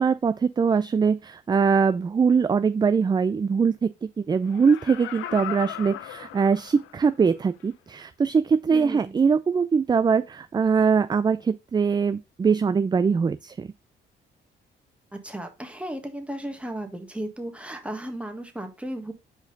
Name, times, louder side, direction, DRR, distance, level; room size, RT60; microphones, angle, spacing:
voice 1, 0.0-13.7, right 5 dB, 20° right, 0.3 m, -22 dB
Laughter, 4.5-7.1 7.6-7.7, left 13 dB, 85° left, 0.6 m, -37 dB
voice 2, 8.7-9.2 15.1-19.1, right 1 dB, 5° right, 1.5 m, -35 dB
4.8 x 4.4 x 5.2 m
cardioid pair, 90°, 20 cm